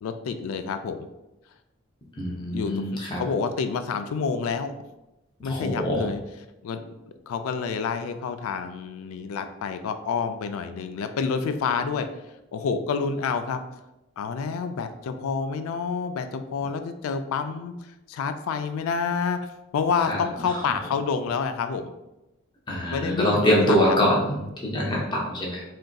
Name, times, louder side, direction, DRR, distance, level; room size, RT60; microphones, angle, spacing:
voice 1, 0.0-1.1 2.5-2.7 3.2-4.7 5.4-6.2 6.6-6.8 7.3-12.1 12.5-13.6 14.2-17.7 18.1-19.4 19.7-21.9 22.9-24.0, left 5 dB, 80° left, 10 dB, 0.3 m, -28 dB
voice 2, 2.2-3.2 5.4-6.1 20.1-20.6 22.7-25.6, equal, 20° left, -3 dB, 0.5 m, -24 dB
3.8 x 2.5 x 2.2 m, 0.96 s
head